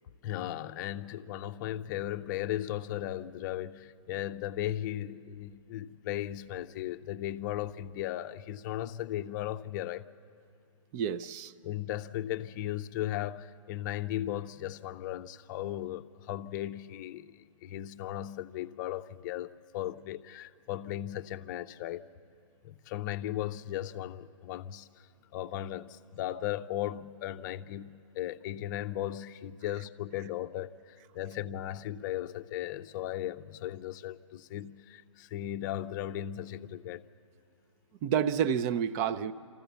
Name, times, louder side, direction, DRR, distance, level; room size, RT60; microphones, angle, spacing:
voice 1, 0.2-10.1 11.6-22.1 22.6-24.9 25.3-37.1, left 13 dB, 40° left, 0.6 m, -36 dB
voice 2, 10.9-11.5 38.0-39.3, right 8 dB, 30° right, 0.6 m, -29 dB
27.0 x 14.5 x 6.9 m
hypercardioid pair, 130°, 16 cm